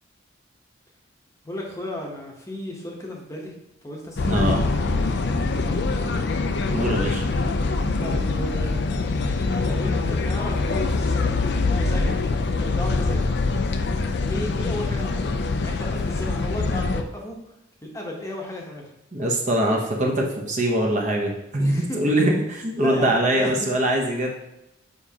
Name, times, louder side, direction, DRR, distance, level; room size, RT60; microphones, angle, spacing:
voice 1, 1.4-3.5 3.8-4.9 5.1-5.8 7.9-8.8 9.6-11.4 11.7-12.2 12.6-13.3 14.3-17.4 17.8-18.9 21.6-22.3 22.8-23.5, left 1 dB, 15° left, -1 dB, 0.9 m, -34 dB
sound 1, 4.2-17.0, left 3 dB, 55° left, 0.4 m, -24 dB
voice 2, 4.2-4.6 6.7-7.2 19.1-24.4, right 1 dB, 35° right, 0 dB, 0.9 m, -23 dB
7.0 x 5.0 x 2.8 m, 0.88 s
head